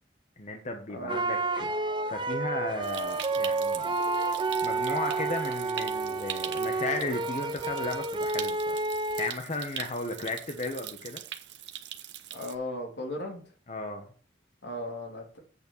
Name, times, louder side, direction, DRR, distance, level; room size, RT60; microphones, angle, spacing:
voice 1, 0.4-3.9 4.6-8.8 9.2-11.2 13.7-14.1, left 2 dB, 40° left, 4 dB, 1.1 m, -35 dB
sound 1, 1.1-9.3, right 2 dB, 25° right, 0.6 m, -31 dB
Stream, 2.8-12.6, right 11 dB, 85° right, 0.8 m, -42 dB
sound 2, 2.9-8.1, right 8 dB, 45° right, 1.8 m, -36 dB
voice 2, 12.3-13.4 14.6-15.4, left 1 dB, 85° left, 1 dB, 2.7 m, -36 dB
8.3 x 4.3 x 7.1 m, 0.42 s
head